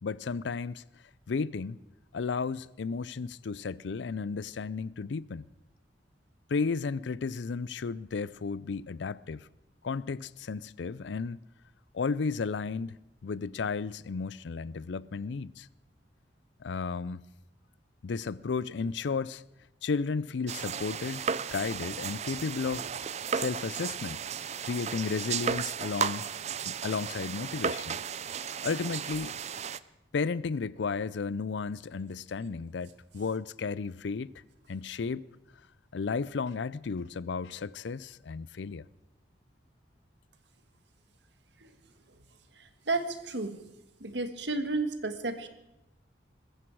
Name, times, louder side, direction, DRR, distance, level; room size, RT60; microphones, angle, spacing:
voice 1, 0.0-0.8 1.3-1.8 2.1-5.5 6.5-9.5 9.8-11.4 11.9-13.0 13.2-15.7 16.6-17.2 18.0-19.4 19.8-22.9 23.3-24.2 24.6-26.3 26.7-28.0 28.6-29.4 30.1-34.3 34.7-35.3 35.9-38.9, left 5 dB, 70° left, 0.5 m, -33 dB
sound 1, 20.5-29.8, right 7 dB, 35° right, 0.5 m, -34 dB
voice 2, 42.9-43.6 44.0-45.5, right 3 dB, 65° right, 1.6 m, -32 dB
20.5 x 15.0 x 4.7 m
head